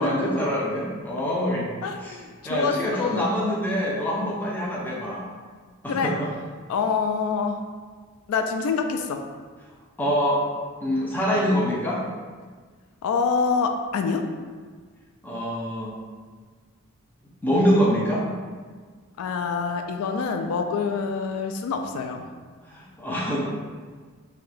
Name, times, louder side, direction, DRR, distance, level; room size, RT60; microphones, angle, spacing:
voice 1, 0.0-1.7 2.0-2.2 2.4-5.3 5.8-6.3 10.0-10.4 10.8-12.0 15.2-15.9 17.4-18.3 22.7-23.4, equal, 10° left, -5 dB, 0.4 m, -25 dB
voice 2, 1.8-3.3 5.9-6.1 6.7-7.6 8.3-9.2 13.0-14.3 19.2-22.3, left 5 dB, 90° left, 9 dB, 0.3 m, -26 dB
2.7 x 2.1 x 4.0 m, 1.5 s
head